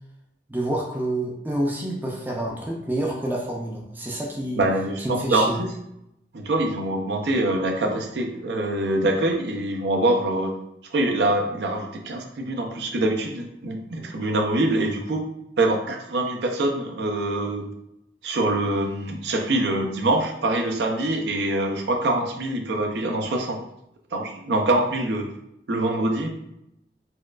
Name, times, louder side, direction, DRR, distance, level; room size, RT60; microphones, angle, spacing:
voice 1, 0.5-4.6 5.0-5.6, right 1 dB, 10° right, -2 dB, 0.4 m, -28 dB
voice 2, 4.6-5.7 6.3-10.5 10.9-15.2 15.6-17.6 18.2-23.6 24.1-25.3 25.7-26.3, right 2 dB, 70° right, 3 dB, 0.5 m, -24 dB
4.3 x 2.2 x 2.3 m, 0.80 s
head